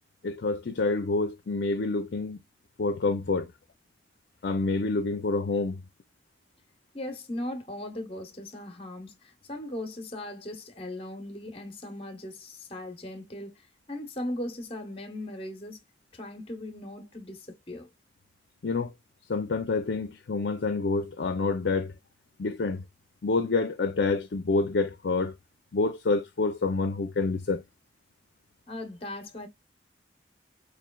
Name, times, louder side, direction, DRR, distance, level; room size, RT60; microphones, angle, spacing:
voice 1, 0.2-2.4 2.8-3.5 4.4-5.8 18.6-18.9 19.3-21.9 22.4-22.8 23.2-25.3 25.7-27.6, left 3 dB, 65° left, 0.5 m, -27 dB
voice 2, 6.9-13.5 13.9-15.8 16.1-17.9 28.7-29.5, left 1 dB, 30° left, 0.9 m, -38 dB
4.5 x 3.1 x 2.2 m
head